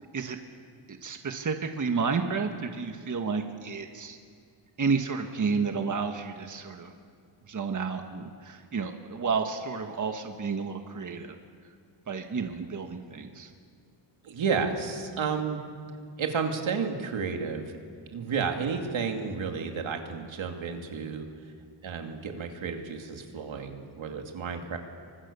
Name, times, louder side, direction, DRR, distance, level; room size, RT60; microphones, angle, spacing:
voice 1, 0.9-4.2 4.8-6.9 7.5-11.3 12.1-13.5, right 5 dB, 40° right, 5 dB, 1.6 m, -31 dB
voice 2, 14.2-15.6 16.2-21.5 21.8-24.8, right 5 dB, 85° right, 3 dB, 2.7 m, -32 dB
28.0 x 24.5 x 6.9 m, 2.1 s
wide cardioid pair, 135°, 46 cm